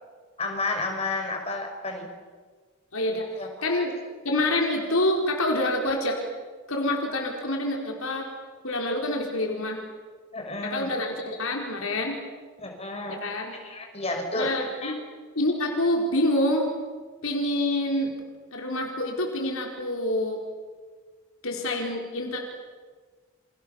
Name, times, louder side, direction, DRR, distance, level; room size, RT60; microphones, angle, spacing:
voice 1, 0.4-2.1 3.4-3.7 10.3-10.9 12.6-13.2 13.5-14.5 14.8-15.0, left 2 dB, 25° left, 3 dB, 5.8 m, -31 dB
voice 2, 2.9-3.9 4.2-6.2 6.7-8.3 8.6-9.8 10.6-12.2 13.1-13.5 14.3-15.0 15.3-16.7 17.2-18.1 18.5-20.4 21.4-22.4, left 1 dB, 70° left, 1 dB, 4.4 m, -27 dB
29.5 x 27.5 x 7.1 m, 1.5 s
head